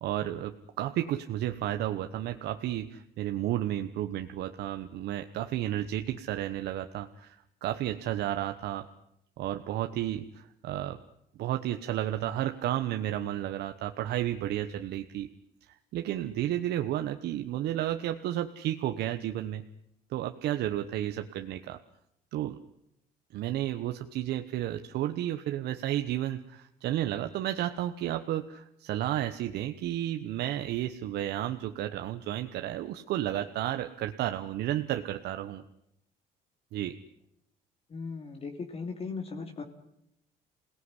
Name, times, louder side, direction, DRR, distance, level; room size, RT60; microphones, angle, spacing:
voice 1, 0.0-8.8 9.4-11.0 11.4-15.3 15.9-19.6 20.1-21.8 22.3-22.6 23.3-35.6 36.7-36.9, right 12 dB, 75° right, 7 dB, 1.2 m, -32 dB
voice 2, 37.9-39.6, left 4 dB, 35° left, 4 dB, 2.9 m, -37 dB
28.0 x 18.0 x 9.9 m, 0.81 s
cardioid pair, 110°, 17 cm